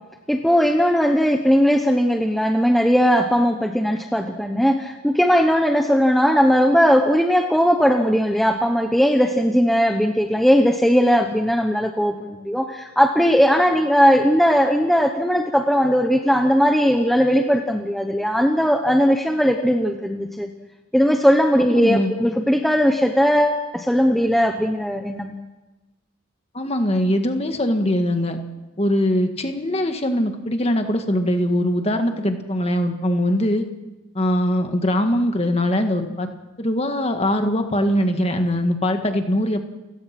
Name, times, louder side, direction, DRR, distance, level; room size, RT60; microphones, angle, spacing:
voice 1, 0.3-20.5 20.9-25.3, equal, ahead, 4 dB, 1.0 m, -18 dB
voice 2, 21.6-22.1 26.5-28.4 28.8-33.6 34.2-36.3 36.6-39.6, equal, 25° left, 6 dB, 1.8 m, -21 dB
30.0 x 16.5 x 6.0 m, 1.1 s
head